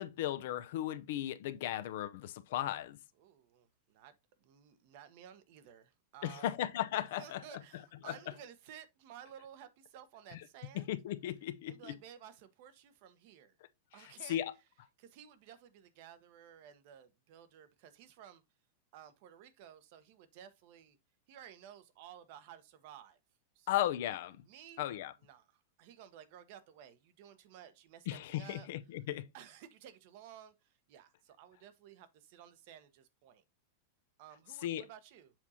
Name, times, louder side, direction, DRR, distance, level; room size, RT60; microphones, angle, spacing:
voice 1, 0.0-3.0 6.2-7.4 8.1-8.2 10.7-11.9 14.3-14.5 23.7-24.4 24.8-25.1 28.1-29.3 34.6-34.8, left 12 dB, 65° left, 0.6 m, -36 dB
voice 2, 3.2-4.1 4.4-6.5 7.2-10.9 11.7-13.6 13.9-14.4 15.0-18.4 18.9-21.0 21.3-23.2 23.5-23.9 24.4-24.9 25.2-28.7 29.3-33.4 34.2-35.3, right 9 dB, 55° right, 1.0 m, -55 dB
7.3 x 4.7 x 2.8 m
hypercardioid pair, 100°, 0 cm